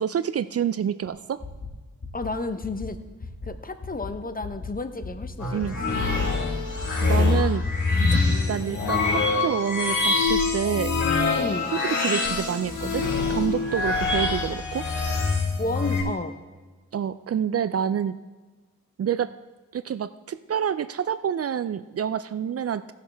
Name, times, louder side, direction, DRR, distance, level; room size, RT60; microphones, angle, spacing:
voice 1, 0.0-1.4 5.5-5.7 7.0-7.6 8.0-11.0 11.7-14.9 16.9-18.2 19.0-19.3 19.7-22.8, right 8 dB, 50° right, 14 dB, 0.4 m, -28 dB
sound 1, 1.1-1.2 1.4-1.7 2.0-2.3 2.6-2.9 3.2-3.5 3.8-4.1 4.4-4.7 5.0-5.3 5.6-5.9 6.2-6.5 6.8-7.1 7.4-7.7, left 4 dB, 50° left, 1.7 m, -36 dB
voice 2, 2.1-3.0 3.4-6.0 7.2-7.4 11.4-11.7 15.6-16.4, left 2 dB, 30° left, 9 dB, 0.9 m, -32 dB
sound 2, 5.4-16.0, left 3 dB, 80° left, 3.9 m, -24 dB
17.0 x 6.5 x 3.4 m, 1.3 s
cardioid pair, 60°, 31 cm